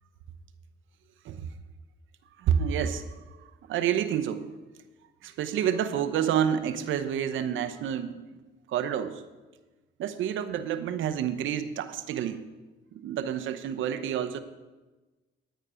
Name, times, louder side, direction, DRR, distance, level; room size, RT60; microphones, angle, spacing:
voice 1, 2.4-3.1 3.7-4.5 5.2-8.1 8.7-9.2 10.0-12.4 12.9-14.4, right 9 dB, 80° right, 10 dB, 0.9 m, -28 dB
10.0 x 9.1 x 5.0 m, 1.2 s
cardioid pair, 90°, 20 cm